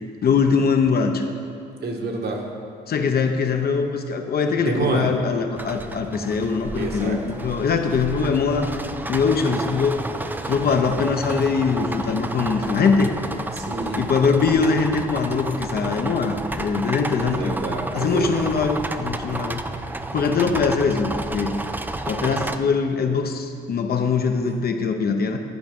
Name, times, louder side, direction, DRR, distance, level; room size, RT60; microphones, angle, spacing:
voice 1, 0.2-1.2 2.9-8.7 9.1-10.0 10.4-13.1 14.0-17.6 17.9-19.6 20.1-21.5 22.1-25.4, left 5 dB, 50° left, 5 dB, 0.8 m, -22 dB
voice 2, 1.8-2.4 4.6-5.1 6.8-7.2 13.5-14.0 17.2-18.3 24.4-24.5, right 3 dB, 55° right, 0 dB, 1.5 m, -27 dB
sound 1, 5.6-22.6, right 2 dB, 10° right, 0.4 m, -31 dB
11.0 x 4.6 x 5.3 m, 2.3 s
cardioid pair, 90°, 20 cm